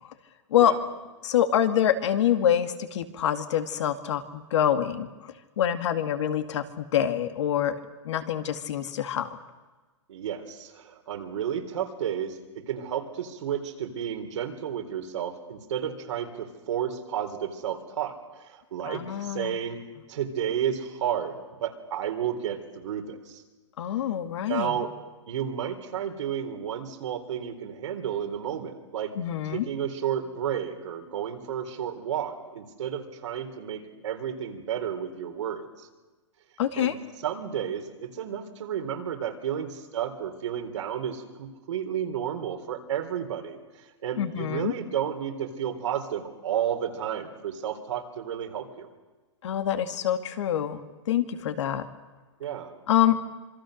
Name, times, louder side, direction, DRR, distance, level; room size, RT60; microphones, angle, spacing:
voice 1, 1.2-7.8 8.0-9.4 18.9-19.6 23.8-24.8 29.2-29.7 36.6-37.0 44.2-44.7 49.4-50.8 51.1-51.9 52.9-53.2, left 10 dB, 65° left, 8 dB, 2.3 m, -26 dB
voice 2, 10.1-19.8 20.1-23.4 24.5-24.9 25.3-29.1 29.4-35.9 36.8-37.0 37.2-48.9 52.4-52.8, right 9 dB, 70° right, 5 dB, 3.8 m, -32 dB
26.5 x 23.0 x 6.6 m, 1.2 s
hypercardioid pair, 135°, 16 cm